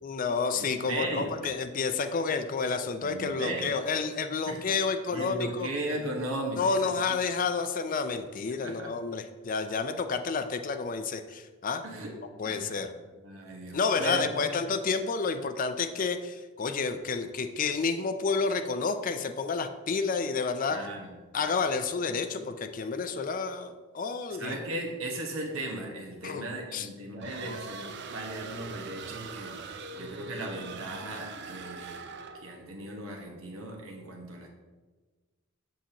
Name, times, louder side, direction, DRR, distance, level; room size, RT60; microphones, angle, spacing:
voice 1, 0.0-5.7 6.6-11.8 12.4-12.9 13.7-20.8 21.3-24.6 26.2-26.5 26.7-26.9, left 4 dB, 40° left, 9 dB, 0.4 m, -30 dB
voice 2, 0.5-1.3 3.0-3.7 4.5-4.6 5.1-7.2 8.6-8.9 11.8-12.2 12.5-12.8 13.2-14.6 20.7-21.6 24.4-32.0 32.4-34.5, right 1 dB, 80° right, 0 dB, 1.4 m, -37 dB
sound 1, 27.2-32.6, right 4 dB, 55° right, 0.5 m, -42 dB
7.4 x 6.8 x 2.9 m, 1.3 s
head